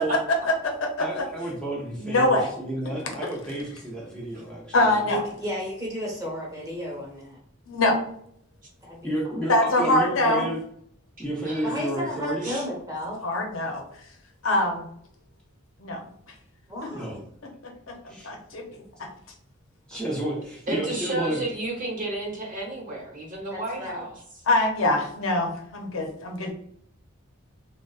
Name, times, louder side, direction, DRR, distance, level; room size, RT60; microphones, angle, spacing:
voice 1, 0.3-1.2 2.0-2.5 4.7-5.2 7.7-8.0 9.5-10.5 13.2-13.8 14.4-14.9 15.8-16.0 16.8-16.9 17.4-19.1 24.5-26.5, left 1 dB, 75° left, 1 dB, 0.7 m, -24 dB
voice 2, 1.0-5.1 9.0-10.6 11.2-12.4 16.9-17.2 18.1-18.3 19.9-21.4, right 1 dB, 5° left, -5 dB, 0.6 m, -31 dB
voice 3, 5.1-7.4 8.8-9.5 11.6-13.2 16.7-17.2 19.9-20.4 23.5-24.0, equal, 15° right, -4 dB, 1.2 m, -34 dB
voice 4, 20.7-24.1, right 2 dB, 40° right, -2 dB, 0.9 m, -32 dB
3.8 x 2.1 x 2.3 m, 0.67 s
head